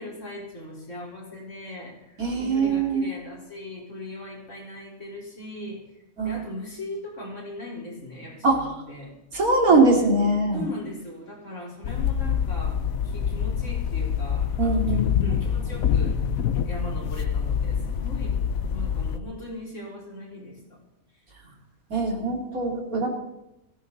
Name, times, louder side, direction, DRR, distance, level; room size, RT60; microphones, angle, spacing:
voice 1, 0.0-5.8 6.2-9.1 9.7-9.9 10.5-12.8 13.1-16.2 16.6-18.4 18.7-20.8 21.4-21.5, left 1 dB, 55° left, -4 dB, 5.0 m, -39 dB
voice 2, 2.2-3.1 6.2-6.4 8.4-8.6 9.3-10.7 14.6-15.3 21.9-23.1, right 3 dB, 75° right, 1 dB, 3.2 m, -22 dB
sound 1, 11.8-19.2, left 8 dB, 75° left, 1.1 m, -26 dB
18.0 x 15.5 x 4.1 m, 0.91 s
omnidirectional pair, 1.5 m